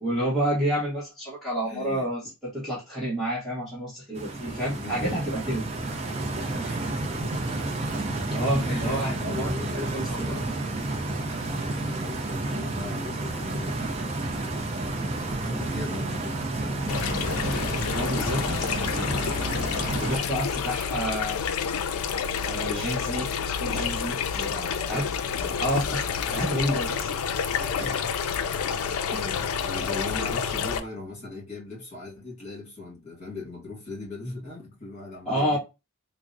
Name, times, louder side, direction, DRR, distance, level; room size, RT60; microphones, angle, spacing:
voice 1, 0.0-5.7 8.2-10.4 17.8-19.4 20.0-21.5 22.4-24.2 24.9-25.0 25.6-27.2 35.2-35.6, equal, ahead, 1.0 m, -29 dB
voice 2, 1.6-2.1 4.8-5.2 6.0-7.5 8.6-10.6 11.8-14.1 14.7-16.9 23.7-23.9 24.3-25.6 27.6-28.1 29.1-35.6, left 2 dB, 30° left, 1.8 m, -39 dB
Stream, 4.1-20.2, right 2 dB, 30° right, 0.5 m, -30 dB
sound 1, 16.9-30.8, left 7 dB, 75° left, 0.3 m, -29 dB
3.4 x 2.0 x 2.5 m
head